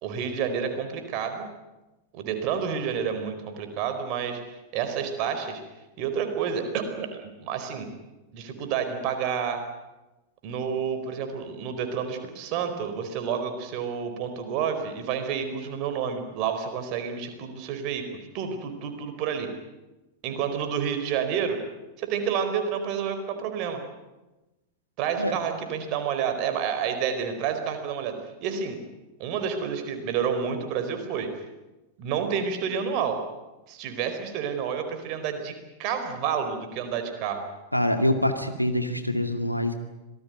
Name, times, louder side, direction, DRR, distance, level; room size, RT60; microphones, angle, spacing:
voice 1, 0.0-1.5 2.1-4.4 4.7-5.6 6.0-7.9 8.3-9.6 10.4-18.1 18.3-19.5 20.2-21.6 22.0-23.8 25.0-28.8 29.2-31.3 32.0-33.2 33.7-37.4, right 7 dB, 40° right, 7 dB, 4.6 m, -29 dB
voice 2, 37.7-39.7, left 1 dB, 90° left, 7 dB, 2.3 m, -25 dB
26.0 x 19.0 x 9.2 m, 1.1 s
figure-of-eight pair, 90°, 0 cm